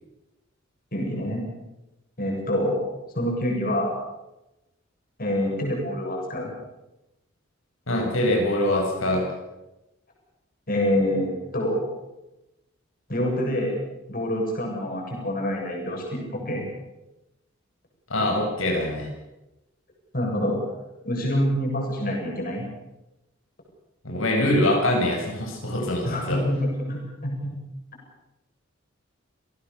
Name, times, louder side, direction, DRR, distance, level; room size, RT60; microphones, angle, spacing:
voice 1, 0.9-1.4 2.2-2.8 3.1-3.9 5.2-6.5 10.7-11.8 13.1-13.8 14.1-16.6 20.1-20.6 21.0-22.6 26.0-27.5, equal, 45° left, -1 dB, 7.7 m, -26 dB
voice 2, 7.9-9.3 18.1-19.1 24.0-26.4, left 1 dB, 85° left, 0 dB, 6.9 m, -23 dB
28.0 x 18.0 x 7.0 m, 0.97 s
head